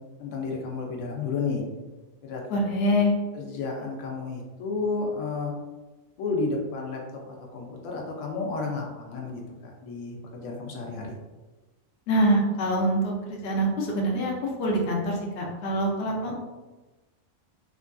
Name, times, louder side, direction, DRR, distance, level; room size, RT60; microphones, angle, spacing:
voice 1, 0.2-1.6 2.2-2.6 3.3-5.5 6.2-11.1 16.2-16.3, left 4 dB, 85° left, 0 dB, 1.1 m, -32 dB
voice 2, 2.5-3.1 12.1-14.3 14.6-16.3, right 1 dB, 60° left, -1 dB, 0.7 m, -25 dB
3.3 x 2.5 x 2.2 m, 1.2 s
omnidirectional pair, 1.4 m